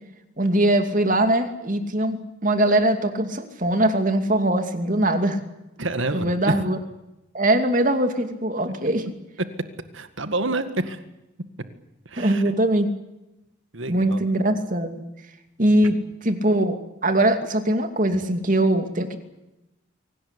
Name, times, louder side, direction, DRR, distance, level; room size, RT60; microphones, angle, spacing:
voice 1, 0.4-5.4 6.1-6.8 7.3-9.0 12.2-12.9 13.9-15.0 15.6-16.8 17.0-19.2, right 1 dB, 40° right, 7 dB, 2.6 m, -21 dB
voice 2, 5.8-6.6 8.7-8.8 9.9-11.0 12.1-12.4 13.7-14.2, right 2 dB, 70° right, 10 dB, 1.9 m, -28 dB
24.0 x 18.0 x 9.9 m, 0.96 s
head